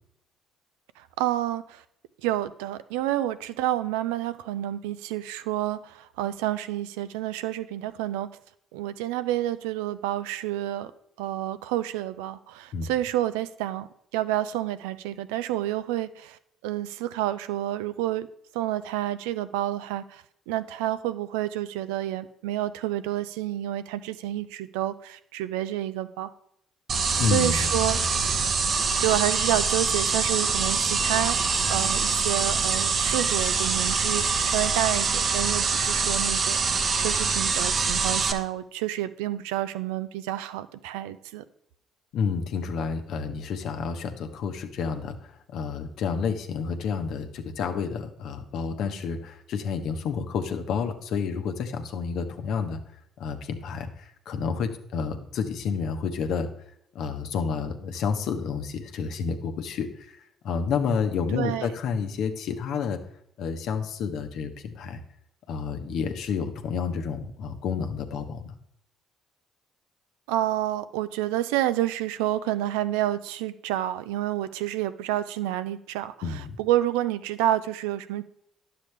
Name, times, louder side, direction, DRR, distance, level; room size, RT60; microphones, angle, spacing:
voice 1, 1.0-1.8 2.2-8.3 8.7-10.9 11.2-18.3 18.5-26.3 27.3-28.0 29.0-31.4 31.7-36.7 37.0-41.4 61.3-61.7 70.3-78.2, right 13 dB, 80° right, 13 dB, 0.4 m, -29 dB
sound 1, 26.9-38.3, right 4 dB, 50° right, 0.8 m, -24 dB
voice 2, 27.2-27.7 42.1-52.8 53.2-56.5 56.9-60.2 60.4-63.0 63.4-65.0 65.5-68.5 76.2-76.6, left 6 dB, 65° left, 6 dB, 0.9 m, -30 dB
10.5 x 6.8 x 3.3 m, 0.73 s
hypercardioid pair, 55°, 0 cm